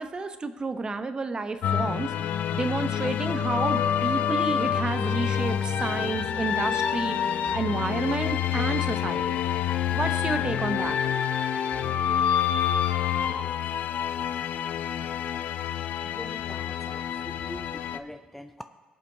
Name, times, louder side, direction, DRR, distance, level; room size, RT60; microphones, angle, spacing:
voice 1, 0.0-7.1 7.5-9.4 9.9-11.0, right 3 dB, 30° right, 9 dB, 0.8 m, -30 dB
sound 1, 1.6-18.0, left 9 dB, 70° left, 0.4 m, -27 dB
voice 2, 16.1-17.7 17.9-18.5, left 1 dB, 5° left, 9 dB, 0.4 m, -42 dB
22.0 x 7.3 x 2.7 m, 1.2 s
cardioid pair, 85°, 3 cm